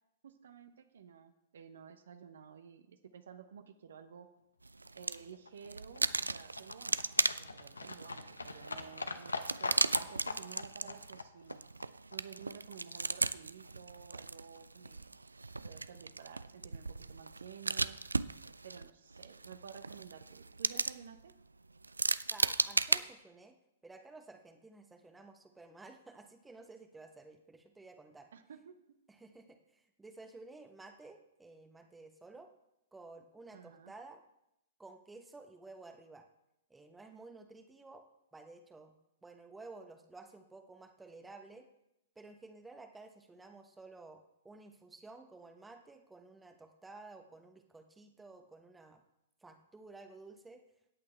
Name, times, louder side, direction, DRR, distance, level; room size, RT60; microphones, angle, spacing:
voice 1, 0.2-4.3 4.9-7.0 7.4-11.7 12.1-15.2 15.6-18.0 18.6-21.3 28.3-29.0 33.5-33.9, right 7 dB, 65° right, 9 dB, 0.9 m, -53 dB
sound 1, 4.6-5.3 5.6-23.0, right 3 dB, 85° right, 0.3 m, -36 dB
Livestock farm animals working animals, 4.8-13.1 13.3-13.4 13.6-13.7 13.9-14.0 14.3-14.4 14.6-14.7 14.9-15.0 15.2-15.3 15.5-15.6, left 3 dB, 80° left, 0.8 m, -44 dB
voice 2, 22.3-23.6 23.8-28.3 29.1-32.5 32.9-34.2 34.8-36.3 36.7-38.0 38.3-38.9 39.2-41.7 42.1-49.0 49.4-50.6, right 3 dB, 10° right, 6 dB, 1.1 m, -53 dB
16.5 x 8.6 x 3.4 m, 0.83 s
figure-of-eight pair, 110°, 0 cm